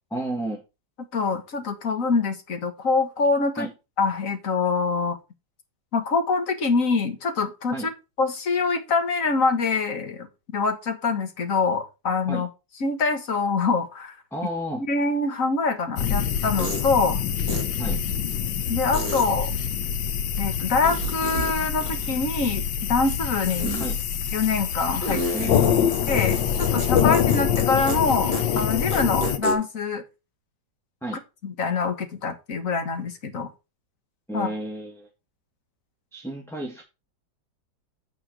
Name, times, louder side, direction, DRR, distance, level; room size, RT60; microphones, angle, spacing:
voice 1, 0.1-0.6 3.6-3.7 7.7-7.9 12.3-12.5 14.3-14.8 17.8-18.0 23.8-24.0 25.3-26.1 31.0-31.2 34.3-35.1 36.1-36.8, right 1 dB, ahead, -1 dB, 1.6 m, -32 dB
voice 2, 1.1-3.7 4.0-5.2 5.9-7.7 8.2-12.5 12.8-14.2 14.7-17.2 18.7-19.5 20.4-23.8 24.3-25.5 26.1-30.0 31.4-33.5 34.3-34.5, left 4 dB, 50° left, 6 dB, 1.8 m, -25 dB
sound 1, 15.7-15.8 16.6-16.9 17.5-17.6 18.9-19.3 20.8-21.5 21.8-22.7 23.6-23.9 25.0-27.6 27.9-28.0 28.3-28.4 28.7-29.6, right 1 dB, 60° right, 3.1 m, -31 dB
sound 2, 16.0-29.4, left 8 dB, 85° left, 1.6 m, -25 dB
9.1 x 4.6 x 5.9 m, 0.28 s
omnidirectional pair, 2.0 m